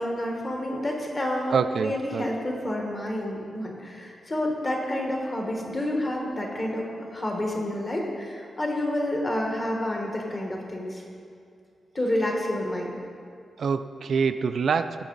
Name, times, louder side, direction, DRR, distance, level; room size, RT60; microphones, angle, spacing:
voice 1, 0.0-1.6 1.8-11.0 11.9-13.0, left 1 dB, 25° left, 0 dB, 1.4 m, -29 dB
voice 2, 1.5-2.3 13.6-15.0, right 5 dB, 55° right, 10 dB, 0.3 m, -25 dB
17.0 x 6.1 x 3.9 m, 2.3 s
wide cardioid pair, 170°, 0 cm